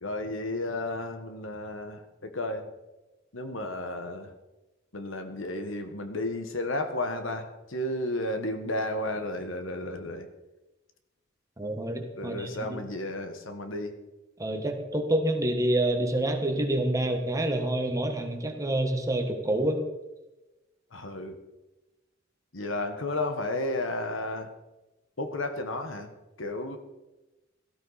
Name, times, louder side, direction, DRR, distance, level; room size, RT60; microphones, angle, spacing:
voice 1, 0.0-2.7 3.3-4.3 4.9-10.3 12.2-13.9 20.9-21.4 22.5-24.5 25.2-26.1 26.4-26.8, left 1 dB, 85° left, 7 dB, 1.5 m, -33 dB
voice 2, 11.6-12.8 14.4-19.8, right 1 dB, 15° right, 4 dB, 1.4 m, -27 dB
17.5 x 13.0 x 4.2 m, 1.1 s
head